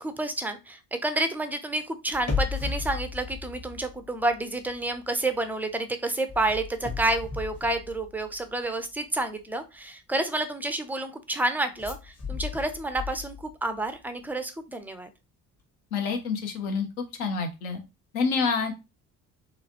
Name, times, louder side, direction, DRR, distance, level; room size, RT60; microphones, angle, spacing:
voice 1, 0.0-15.1, right 2 dB, 5° right, 8 dB, 0.4 m, -29 dB
sound 1, 2.1-4.4 4.7-5.0 6.3-8.5 11.8-13.7 13.9-14.0, left 5 dB, 35° left, 1.3 m, -34 dB
voice 2, 15.9-17.8 18.1-18.7, left 5 dB, 70° left, 4 dB, 0.9 m, -28 dB
3.0 x 2.5 x 2.8 m, 0.26 s
figure-of-eight pair, 50°, 46 cm